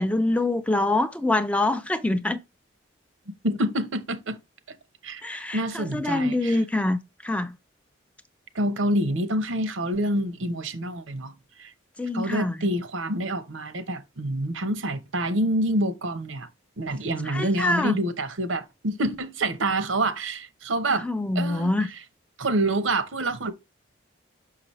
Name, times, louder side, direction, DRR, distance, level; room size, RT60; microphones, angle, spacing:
voice 1, 0.0-2.4 5.2-7.5 12.0-12.6 17.3-18.0 21.0-21.9, left 2 dB, 5° left, 0.3 m, -25 dB
voice 2, 3.3-4.4 5.0-6.6 8.5-11.3 11.6-11.7 12.1-16.5 16.8-21.1 21.3-22.0 22.4-23.5, right 1 dB, 80° right, 0.9 m, -27 dB
6.0 x 5.7 x 3.1 m
head